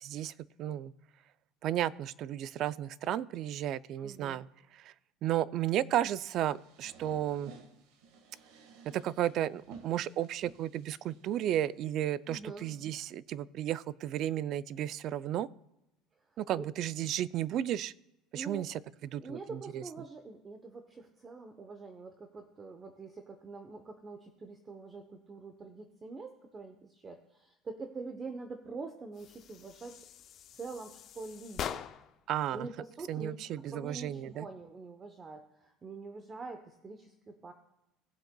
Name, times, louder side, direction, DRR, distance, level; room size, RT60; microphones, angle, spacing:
voice 1, 0.0-0.3 0.6-0.9 1.6-4.5 5.2-7.5 8.9-15.5 16.4-17.9 18.3-18.8 19.1-19.8 32.3-32.7 33.1-34.5, right 12 dB, 45° right, 18 dB, 0.3 m, -33 dB
voice 2, 4.0-4.4 12.3-12.7 16.3-16.7 18.3-18.7 19.2-30.0 30.5-31.9 32.5-33.4 33.7-37.5, right 3 dB, 20° right, 6 dB, 0.8 m, -45 dB
sound 1, 5.8-11.9, right 5 dB, 75° right, 1.5 m, -55 dB
sound 2, 29.1-32.2, left 9 dB, 40° left, 0.5 m, -43 dB
19.5 x 7.8 x 2.2 m, 0.92 s
cardioid pair, 145°, 0 cm